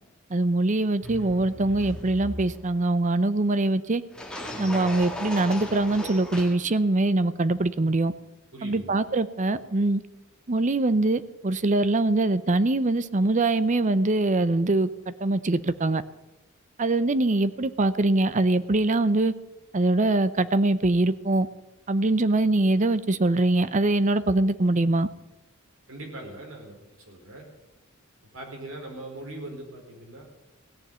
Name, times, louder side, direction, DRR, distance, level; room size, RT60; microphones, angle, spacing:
voice 1, 0.3-4.0 4.6-8.1 8.6-10.0 10.5-14.9 15.2-16.0 16.8-19.3 19.7-21.5 21.9-25.1, right 2 dB, 35° right, 14 dB, 0.6 m, -23 dB
sound 1, 1.0-2.8 4.1-6.6, left 1 dB, 5° left, 1.9 m, -37 dB
voice 2, 8.5-9.0 25.9-26.8 27.0-27.4 28.3-30.2, right 1 dB, 70° right, 1 dB, 4.4 m, -40 dB
17.0 x 7.2 x 9.2 m, 0.98 s
head